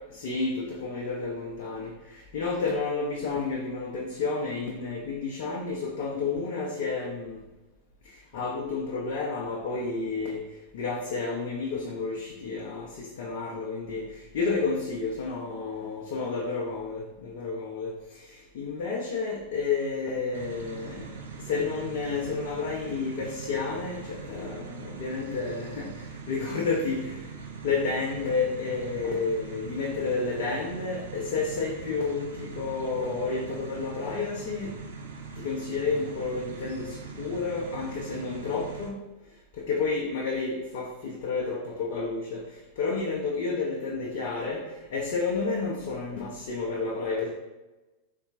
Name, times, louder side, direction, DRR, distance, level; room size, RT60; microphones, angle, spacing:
voice 1, 0.1-7.4 8.0-10.5 10.7-27.3 27.6-34.8 35.4-39.0 39.5-47.3, left 4 dB, 50° left, -2 dB, 0.5 m, -31 dB
sound 1, 20.3-38.9, right 5 dB, 65° right, 0.4 m, -41 dB
4.0 x 2.2 x 2.5 m, 1.1 s
figure-of-eight pair, 90°, 0 cm